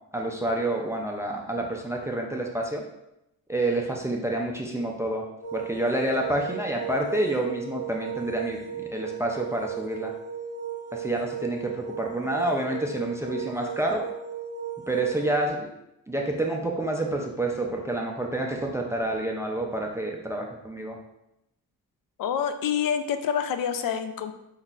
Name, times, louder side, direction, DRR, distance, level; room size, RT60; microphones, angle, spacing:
voice 1, 0.1-2.8 3.5-5.2 5.5-10.1 10.9-14.1 14.9-15.7 16.1-21.0, right 1 dB, 10° right, 0 dB, 0.3 m, -28 dB
sound 1, 5.4-15.5, right 7 dB, 20° left, 1.2 m, -36 dB
voice 2, 22.2-24.3, left 8 dB, 75° left, 8 dB, 0.5 m, -27 dB
5.3 x 3.9 x 2.4 m, 0.86 s
wide cardioid pair, 175°, 34 cm